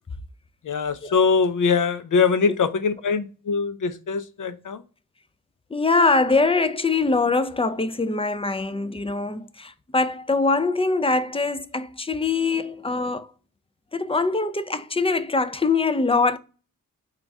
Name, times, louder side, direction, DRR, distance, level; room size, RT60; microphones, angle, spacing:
voice 1, 0.6-4.8, left 5 dB, 60° left, 0.6 m, -22 dB
voice 2, 5.7-13.3 13.9-16.4, left 3 dB, 15° left, 0.4 m, -23 dB
3.7 x 2.4 x 4.1 m
cardioid pair, 45°, 35 cm